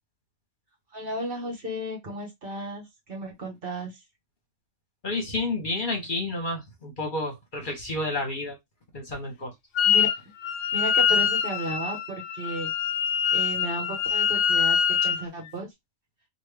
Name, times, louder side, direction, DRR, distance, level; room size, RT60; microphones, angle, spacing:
voice 1, 0.9-3.9 9.8-10.1 10.7-12.7 13.3-15.7, right 1 dB, 50° right, 1.3 m, -34 dB
voice 2, 5.0-8.6 8.9-9.5, left 2 dB, 45° left, 1.0 m, -30 dB
Wind instrument woodwind instrument, 9.8-10.2 10.4-15.2, left 7 dB, 70° left, 0.9 m, -24 dB
3.2 x 2.5 x 3.2 m
omnidirectional pair, 1.3 m